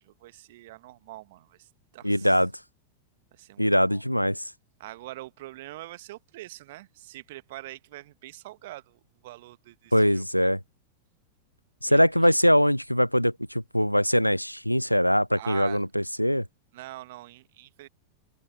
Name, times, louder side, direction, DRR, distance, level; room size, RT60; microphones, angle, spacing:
voice 1, 0.0-2.4 3.3-4.0 4.8-10.5 11.9-12.3 15.3-15.9 16.7-17.9, right 17 dB, 55° right, 1.6 m, -44 dB
voice 2, 2.0-2.5 3.6-4.4 9.9-10.6 11.8-16.4, equal, 90° left, 0.4 m, -22 dB
figure-of-eight pair, 90°, 0 cm